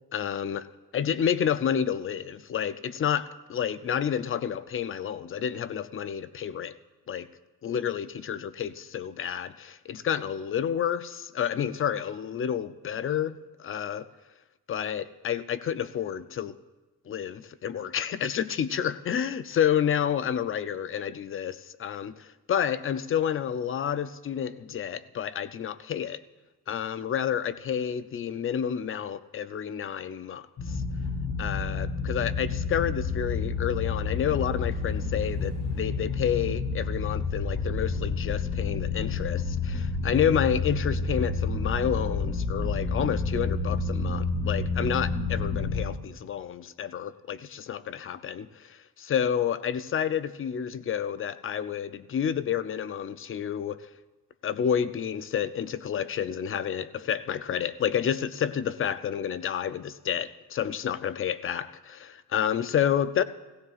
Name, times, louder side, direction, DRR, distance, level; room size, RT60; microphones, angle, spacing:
voice 1, 0.1-0.6 0.9-6.7 7.1-7.3 7.6-14.1 14.7-16.6 17.1-26.2 26.7-30.8 31.4-53.8 54.4-63.2, left 8 dB, 35° left, 0.5 m, -29 dB
sound 1, 30.6-45.8, left 4 dB, 60° left, 3.6 m, -29 dB
18.5 x 16.5 x 2.4 m
cardioid pair, 105°, 38 cm